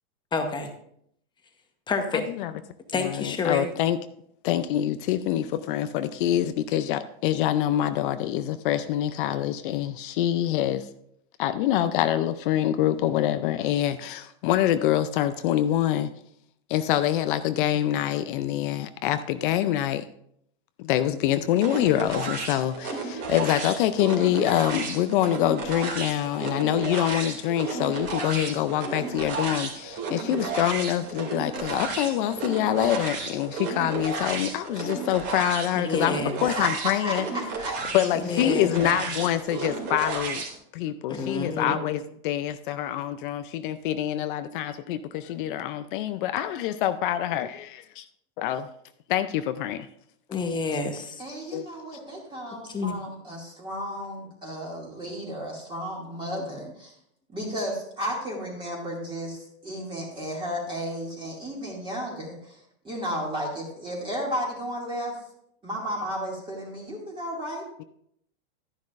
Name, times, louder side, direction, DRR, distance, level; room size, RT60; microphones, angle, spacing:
voice 1, 0.3-0.7 1.9-2.2 2.9-3.7 30.3-30.5 35.7-36.4 38.2-38.7 41.1-41.8 50.3-51.2 52.7-53.0 56.4-56.6, left 4 dB, 15° left, 5 dB, 1.0 m, -29 dB
voice 2, 2.9-4.0 4.4-10.9 11.4-16.1 16.7-20.0 20.8-37.2 37.9-40.4 40.7-47.7 48.4-48.7 49.1-49.9 51.5-51.6, left 12 dB, 50° left, 11 dB, 0.5 m, -25 dB
sound 1, 21.6-40.5, right 4 dB, 30° right, 2.5 m, -33 dB
voice 3, 36.5-37.1 37.6-37.7 51.2-56.9 57.3-62.6 62.8-65.1 65.6-67.8, equal, 15° right, -4 dB, 2.3 m, -33 dB
12.0 x 10.5 x 2.5 m, 0.71 s
supercardioid pair, 145°, 34 cm